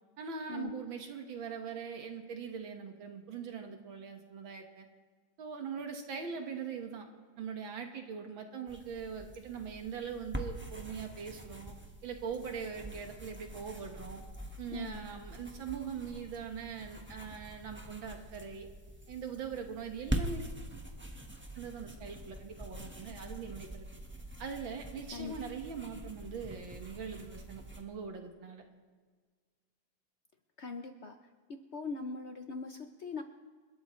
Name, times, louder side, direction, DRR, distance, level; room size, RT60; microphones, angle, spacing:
voice 1, 0.2-4.9 5.4-7.1 7.4-11.7 12.0-14.2 14.6-18.7 19.1-20.5 21.6-23.9 24.4-28.6, right 6 dB, 75° right, 4 dB, 2.3 m, -41 dB
sound 1, 8.7-27.8, right 1 dB, 10° right, 0.9 m, -44 dB
voice 2, 14.7-15.0 25.1-25.3 30.6-31.2 31.5-33.2, left 4 dB, 65° left, 6 dB, 0.7 m, -41 dB
29.0 x 12.5 x 3.2 m, 1.5 s
omnidirectional pair, 2.1 m